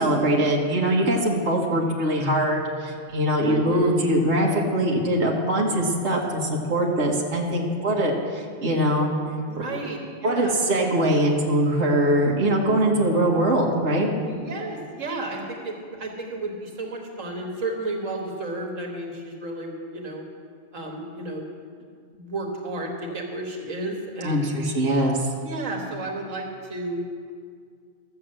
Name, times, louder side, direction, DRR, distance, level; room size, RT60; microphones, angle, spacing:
voice 1, 0.0-9.1 9.7-9.8 10.2-14.1 24.2-25.3, right 1 dB, 65° right, -2 dB, 1.7 m, -22 dB
voice 2, 3.4-4.0 9.5-10.5 14.2-20.2 20.7-21.5 21.7-21.8 22.1-24.5 25.4-27.3, right 2 dB, 90° right, 1 dB, 1.8 m, -32 dB
13.0 x 7.1 x 7.6 m, 2.1 s
omnidirectional pair, 1.3 m